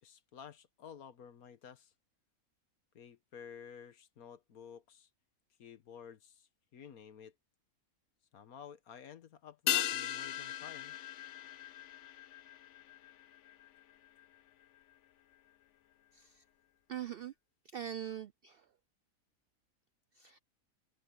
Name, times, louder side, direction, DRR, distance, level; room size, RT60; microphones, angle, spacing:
voice 1, 0.0-1.9 2.9-5.1 5.6-7.3 8.3-11.0, left 7 dB, 80° left, 1.6 m, -52 dB
sound 1, 9.7-14.4 14.6-14.7, left 11 dB, 60° left, 0.9 m, -38 dB
voice 2, 16.1-16.4 16.9-17.3 17.6-18.7 20.1-20.4, right 10 dB, 70° right, 0.5 m, -43 dB
omnidirectional pair, 1.5 m